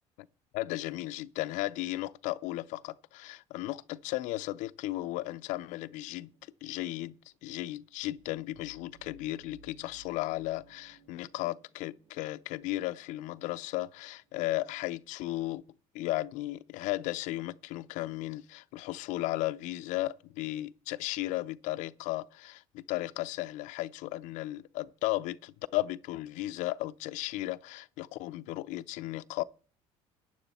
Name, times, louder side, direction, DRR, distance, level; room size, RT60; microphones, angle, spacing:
voice 1, 0.5-6.3 6.6-7.1 7.4-15.6 15.9-29.4, left 17 dB, 80° left, 0.6 m, -35 dB
sound 1, 6.2-14.9, right 2 dB, 60° right, 3.1 m, -62 dB
15.0 x 9.8 x 4.2 m
cardioid pair, 135°, 13 cm